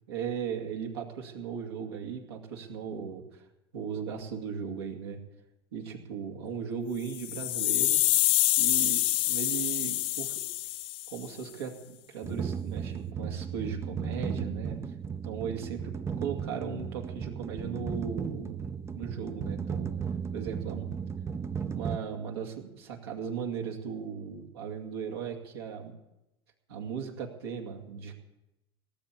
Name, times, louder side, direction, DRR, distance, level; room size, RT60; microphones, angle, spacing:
voice 1, 0.1-3.4 3.7-5.2 5.7-8.0 8.6-10.4 11.1-14.8 15.2-15.9 16.2-18.6 18.9-19.9 20.3-20.9 21.7-25.9 26.7-28.1, right 7 dB, 75° right, 2 dB, 2.4 m, -37 dB
sound 1, 7.1-11.3, left 17 dB, 45° left, 0.4 m, -26 dB
sound 2, 12.2-22.0, right 6 dB, 20° right, 0.7 m, -35 dB
18.5 x 8.0 x 8.4 m, 0.94 s
figure-of-eight pair, 80°, 13 cm